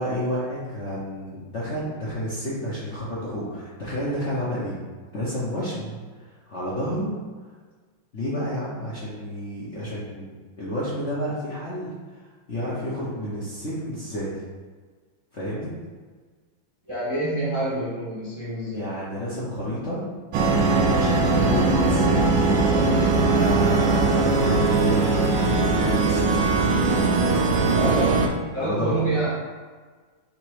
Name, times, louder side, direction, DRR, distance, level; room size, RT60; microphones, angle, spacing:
voice 1, 0.0-4.8 5.1-6.0 6.5-7.1 8.1-10.3 10.6-12.2 12.5-14.3 15.3-15.7 18.7-20.0 20.9-22.4 23.1-26.4 28.6-29.0, equal, 50° left, -9 dB, 1.0 m, -30 dB
voice 2, 16.9-18.9 27.7-28.2 28.5-29.3, right 1 dB, 20° right, -8 dB, 0.9 m, -27 dB
sound 1, 20.3-28.3, right 3 dB, 75° right, 1.3 m, -20 dB
3.9 x 3.0 x 4.7 m, 1.5 s
omnidirectional pair, 2.2 m